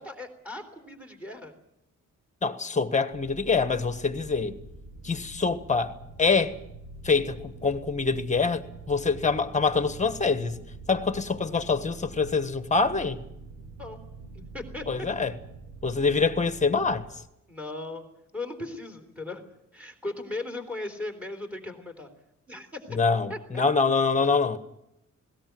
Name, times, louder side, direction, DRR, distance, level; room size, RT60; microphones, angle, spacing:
voice 1, 0.0-1.6 13.8-14.0 14.3-14.8 17.5-18.0 18.3-19.4 19.7-22.1 22.5-23.0 23.3-23.4, left 2 dB, 5° right, 3.6 m, -37 dB
voice 2, 2.4-4.6 5.0-5.9 6.2-6.6 7.0-10.6 10.9-13.2 14.9-15.3 15.8-17.1 22.9-24.6, left 4 dB, 25° left, 1.4 m, -25 dB
sound 1, 3.1-17.1, right 3 dB, 90° right, 7.4 m, -45 dB
20.0 x 17.5 x 9.4 m
wide cardioid pair, 160°, 31 cm